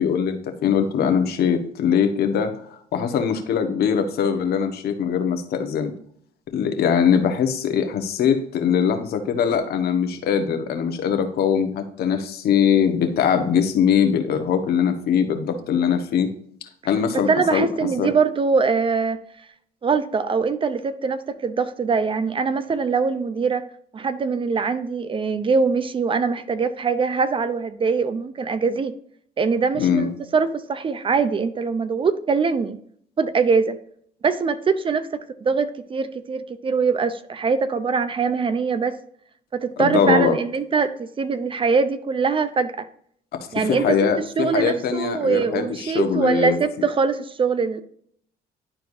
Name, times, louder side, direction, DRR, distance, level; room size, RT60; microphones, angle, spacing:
voice 1, 0.0-5.9 6.5-16.3 16.8-17.7 18.0-18.1 29.8-30.1 39.8-40.4 43.3-46.6, left 7 dB, 65° left, 6 dB, 1.3 m, -21 dB
voice 2, 17.3-19.2 19.8-23.7 23.9-28.9 29.4-32.8 33.2-33.8 34.2-39.0 39.5-42.9 43.5-44.0 44.4-47.8, right 5 dB, 30° right, 12 dB, 0.6 m, -22 dB
11.5 x 4.5 x 2.7 m, 0.63 s
cardioid pair, 110°, 17 cm